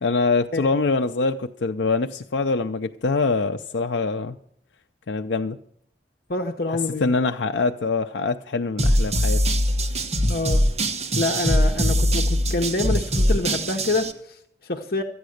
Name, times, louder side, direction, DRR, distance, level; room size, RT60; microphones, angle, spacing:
voice 1, 0.0-4.4 5.1-5.6 6.7-9.4, left 3 dB, 80° left, 5 dB, 0.5 m, -24 dB
voice 2, 6.3-7.1 10.3-10.6 11.1-15.0, left 2 dB, 55° left, 4 dB, 0.9 m, -27 dB
sound 1, 8.8-14.1, equal, 35° right, 1.0 m, -22 dB
14.0 x 9.4 x 6.5 m, 0.70 s
head